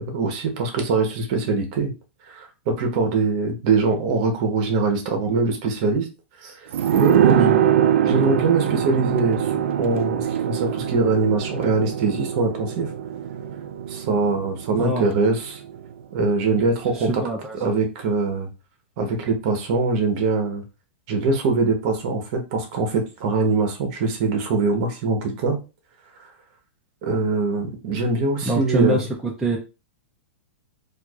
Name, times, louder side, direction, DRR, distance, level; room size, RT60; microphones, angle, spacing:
voice 1, 0.0-1.9 2.3-6.1 6.4-7.6 8.0-12.9 13.9-15.6 16.1-17.2 17.6-18.5 19.0-20.6 21.1-25.6 27.0-29.0, right 3 dB, 35° right, 4 dB, 0.9 m, -23 dB
sound 1, 6.7-16.0 16.3-16.4, right 10 dB, 75° right, 0.4 m, -23 dB
voice 2, 7.2-7.7 14.8-15.1 16.9-17.6 28.5-29.6, right 2 dB, 5° right, -3 dB, 0.4 m, -25 dB
4.5 x 2.4 x 2.3 m, 0.30 s
supercardioid pair, 170°, 7 cm